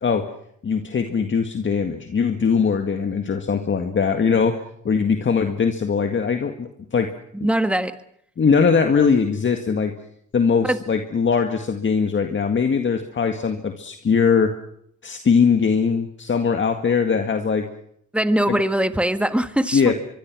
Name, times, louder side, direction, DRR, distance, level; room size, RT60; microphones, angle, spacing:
voice 1, 0.6-4.6 4.8-7.1 8.4-9.9 10.3-14.5 15.0-17.7 18.5-18.6 19.7-19.9, left 5 dB, 40° left, 6 dB, 1.9 m, -21 dB
voice 2, 7.3-8.0 10.6-10.8 18.1-19.9, right 1 dB, 5° right, 10 dB, 1.6 m, -21 dB
24.0 x 23.5 x 6.2 m, 0.71 s
cardioid pair, 90°, 30 cm